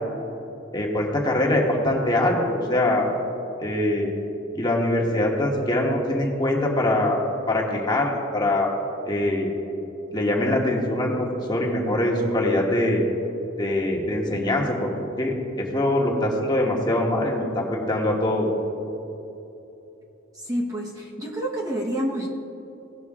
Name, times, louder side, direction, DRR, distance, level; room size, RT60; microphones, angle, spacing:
voice 1, 0.7-3.1 3.6-4.1 4.5-8.7 9.1-9.5 10.1-13.1 13.6-14.9 15.2-18.5, left 1 dB, 20° left, -1 dB, 1.4 m, -23 dB
voice 2, 20.3-22.3, right 1 dB, 20° right, -2 dB, 1.0 m, -28 dB
17.5 x 6.2 x 3.6 m, 3.0 s
head